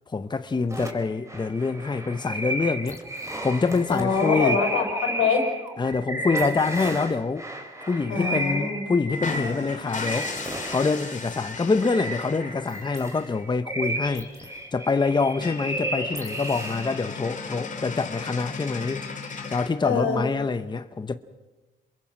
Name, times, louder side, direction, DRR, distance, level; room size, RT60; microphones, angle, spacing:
voice 1, 0.1-3.0 3.4-4.6 5.8-7.5 7.9-10.3 10.7-19.0 19.5-21.2, left 4 dB, 20° left, 0.9 m, -26 dB
sound 1, 0.7-17.3, right 1 dB, 15° right, 4.1 m, -33 dB
voice 2, 3.9-5.4 8.1-8.8 19.8-20.2, left 5 dB, 90° left, 5.3 m, -24 dB
sound 2, 9.1-12.7 14.3-14.4 14.7-14.8 15.1-15.2 15.4-19.7, left 5 dB, 40° left, 2.7 m, -36 dB
27.5 x 22.0 x 6.1 m
cardioid pair, 90°, 20 cm